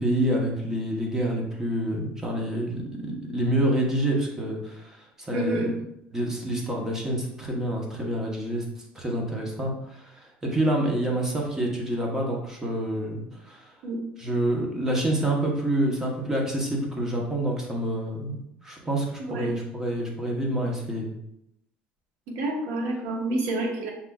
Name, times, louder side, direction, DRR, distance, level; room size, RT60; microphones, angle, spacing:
voice 1, 0.0-5.6 6.1-13.7 14.2-21.1, right 1 dB, 10° right, -1 dB, 0.8 m, -27 dB
voice 2, 5.3-5.8 13.8-14.0 19.3-19.5 22.3-23.9, right 1 dB, 75° right, 1 dB, 1.0 m, -28 dB
5.7 x 3.7 x 2.3 m, 0.79 s
cardioid pair, 170°, 4 cm